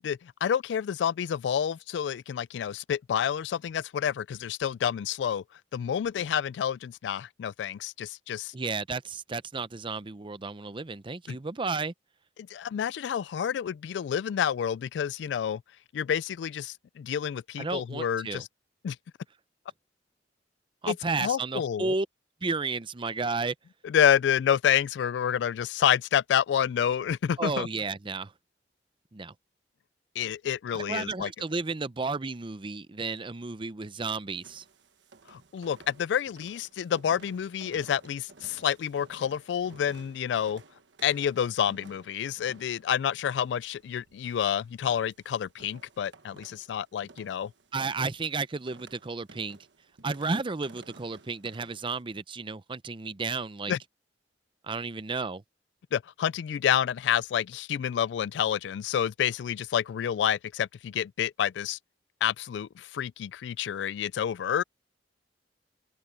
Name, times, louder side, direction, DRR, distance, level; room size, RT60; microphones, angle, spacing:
voice 1, 0.0-5.4 5.7-8.5 11.3-11.4 12.5-15.6 15.9-18.5 18.8-19.0 20.9-21.9 23.8-27.7 30.2-31.3 35.3-40.6 41.0-47.5 53.7-53.8 55.9-61.8 62.2-64.6, left 9 dB, 70° left, 0.3 m, -29 dB
voice 2, 8.5-11.9 17.6-18.4 20.8-22.1 22.4-23.5 27.4-28.3 29.1-29.3 30.7-34.6 47.7-49.6 50.0-53.7 54.6-55.4, right 4 dB, 30° right, 0.6 m, -32 dB
sound 1, 34.3-52.0, right 3 dB, 80° right, 1.3 m, -55 dB
head